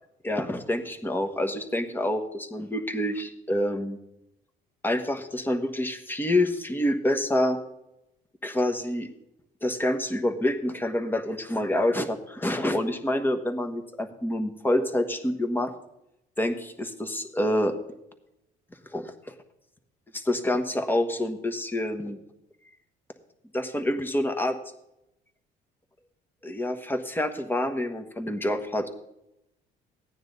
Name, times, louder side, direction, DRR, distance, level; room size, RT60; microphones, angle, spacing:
voice 1, 0.2-4.0 4.8-7.6 8.4-9.1 9.6-15.7 16.4-17.7 18.9-19.1 20.1-22.2 23.5-24.6 26.4-28.9, left 1 dB, 10° left, 6 dB, 1.3 m, -27 dB
15.0 x 9.5 x 4.0 m, 0.84 s
cardioid pair, 110°, 17 cm